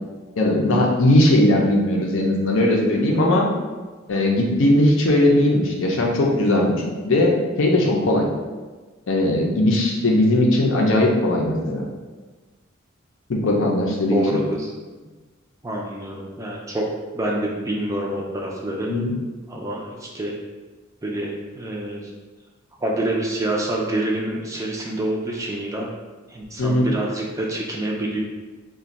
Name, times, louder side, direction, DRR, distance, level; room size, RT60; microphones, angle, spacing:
voice 1, 0.4-3.5 4.1-8.3 9.1-11.8 13.3-14.4 18.9-19.1 26.6-26.9, left 1 dB, 65° left, -1 dB, 0.5 m, -19 dB
voice 2, 14.1-14.7 15.6-16.9 17.1-18.9 19.5-20.3 21.0-22.1 22.8-25.9 26.3-28.2, right 1 dB, 15° right, -2 dB, 0.3 m, -27 dB
2.5 x 2.2 x 3.9 m, 1.3 s
head